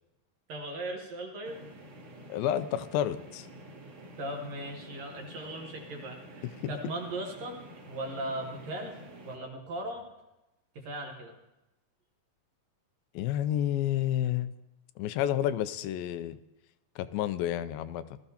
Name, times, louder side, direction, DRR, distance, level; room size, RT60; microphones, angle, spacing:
voice 1, 0.5-1.6 4.2-7.6 7.9-9.0 9.3-10.0 10.8-11.3, right 1 dB, 60° right, 2 dB, 2.0 m, -38 dB
sound 1, 1.4-9.4, equal, 45° right, 2.7 m, -49 dB
voice 2, 2.3-3.5 6.6-6.7 13.1-14.5 15.0-16.4 17.0-18.2, left 11 dB, 90° left, 12 dB, 2.4 m, -30 dB
19.0 x 13.5 x 2.8 m, 0.96 s
omnidirectional pair, 4.1 m